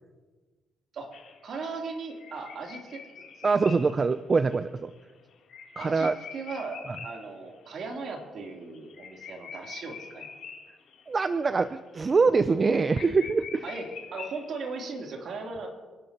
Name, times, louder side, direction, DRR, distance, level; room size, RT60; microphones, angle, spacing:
sound 1, 1.1-7.3 7.6-7.7 8.0-8.1 8.4-11.0 11.4-11.7 12.0-12.1 12.4-12.5 12.7-14.8, left 6 dB, 70° left, 3.3 m, -44 dB
voice 1, 1.4-3.8 5.8-10.3 13.6-13.9 14.1-15.7, right 4 dB, 60° right, 0 dB, 3.4 m, -38 dB
voice 2, 3.4-4.9 5.8-6.1 11.1-13.6, right 4 dB, 35° right, 11 dB, 0.5 m, -24 dB
29.0 x 12.0 x 3.0 m, 1.3 s
cardioid pair, 90°, 0 cm